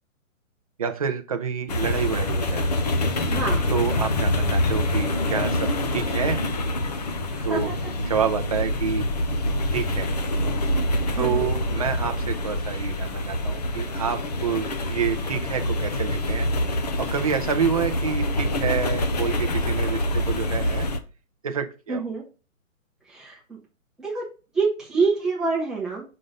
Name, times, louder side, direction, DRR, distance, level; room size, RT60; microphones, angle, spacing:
voice 1, 0.8-2.7 3.7-6.4 7.4-7.8 8.1-9.1 9.7-10.1 11.2-20.9 21.4-22.1, right 7 dB, 25° right, 6 dB, 0.5 m, -28 dB
sound 1, 1.7-21.0, left 1 dB, 30° left, 0.5 m, -25 dB
voice 2, 3.3-3.7 7.4-7.6 11.2-11.5 21.9-22.2 23.1-23.6 24.0-24.2 24.5-26.0, right 4 dB, ahead, -6 dB, 0.8 m, -26 dB
6.6 x 3.8 x 5.2 m, 0.33 s
hypercardioid pair, 155°, 42 cm